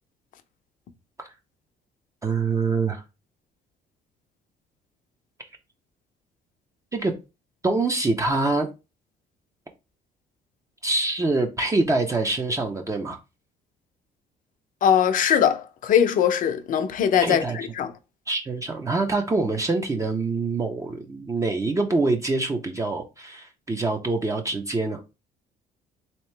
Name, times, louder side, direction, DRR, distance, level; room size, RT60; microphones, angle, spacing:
voice 1, 2.2-3.0 6.9-7.1 7.6-8.7 10.8-13.2 17.2-17.6 18.3-25.0, right 3 dB, 20° right, 0.6 m, -25 dB
voice 2, 14.8-17.9, left 8 dB, 55° left, 0.6 m, -21 dB
3.6 x 2.9 x 3.2 m
cardioid pair, 110°, 17 cm